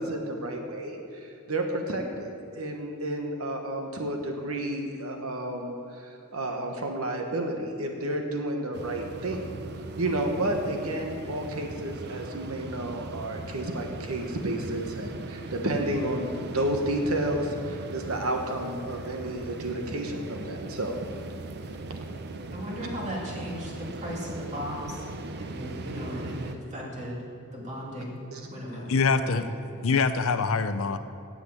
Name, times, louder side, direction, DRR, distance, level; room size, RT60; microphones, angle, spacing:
voice 1, 0.0-9.5 10.0-21.0 28.3-28.4, right 1 dB, 70° right, 3 dB, 1.2 m, -31 dB
sound 1, 8.7-26.5, right 3 dB, 50° right, 0.6 m, -39 dB
voice 2, 22.5-25.0 25.3-27.2 27.5-28.2 28.5-29.5, equal, 30° right, -3 dB, 2.7 m, -36 dB
voice 3, 28.9-29.5 29.8-31.0, left 4 dB, 65° left, 11 dB, 0.6 m, -24 dB
9.7 x 7.8 x 8.4 m, 2.5 s
head